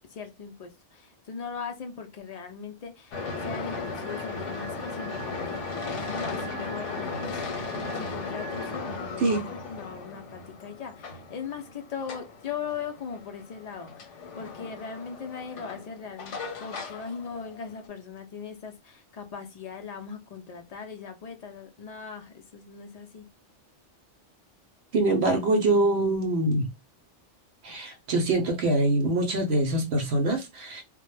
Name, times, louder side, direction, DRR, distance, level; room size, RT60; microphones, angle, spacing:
voice 1, 0.1-7.5 7.9-23.2 27.7-27.8, left 6 dB, 70° left, 0.3 m, -39 dB
sound 1, 3.1-17.9, left 3 dB, 85° left, 1.0 m, -36 dB
voice 2, 9.2-9.5 24.9-26.7 27.6-30.8, right 2 dB, 70° right, 0.8 m, -24 dB
2.1 x 2.0 x 3.1 m
omnidirectional pair, 1.2 m